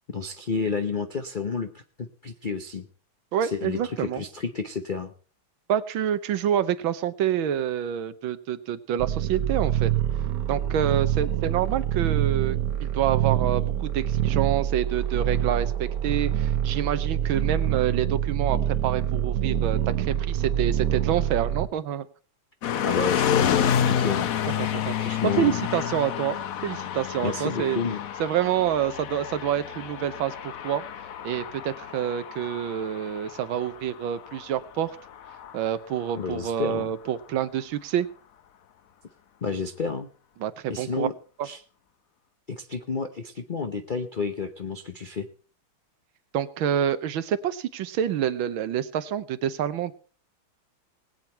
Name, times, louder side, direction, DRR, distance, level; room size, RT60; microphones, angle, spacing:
voice 1, 0.1-2.9 3.4-5.1 22.8-24.3 25.0-25.6 27.2-28.0 36.1-36.9 39.4-40.1 40.7-41.1 41.4-41.6 42.5-45.3, left 5 dB, 80° left, 7 dB, 0.4 m, -30 dB
voice 2, 3.3-4.2 5.7-9.9 10.5-12.6 12.9-22.1 24.6-26.4 26.6-27.8 28.2-30.8 31.2-35.0 35.5-38.1 40.4-41.1 41.4-41.5 46.3-49.9, right 10 dB, 75° right, 13 dB, 1.6 m, -27 dB
sound 1, 9.0-21.7, right 10 dB, 55° right, 1.1 m, -26 dB
sound 2, 22.6-36.6, left 9 dB, 60° left, 0.9 m, -29 dB
20.0 x 8.9 x 4.5 m, 0.39 s
omnidirectional pair, 2.3 m